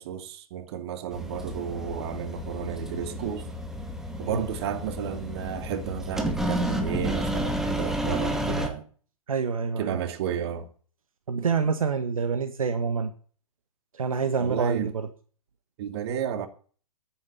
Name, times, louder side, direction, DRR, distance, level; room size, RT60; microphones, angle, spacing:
voice 1, 0.0-3.5 4.2-8.9 9.8-10.7 14.4-14.9 15.8-16.5, right 8 dB, 45° right, 2.3 m, -32 dB
sound 1, 1.1-8.7, equal, ahead, 2.1 m, -31 dB
voice 2, 9.3-10.0 11.3-13.1 13.9-15.1, right 5 dB, 75° right, 1.4 m, -27 dB
10.0 x 9.5 x 8.4 m
figure-of-eight pair, 115°, 18 cm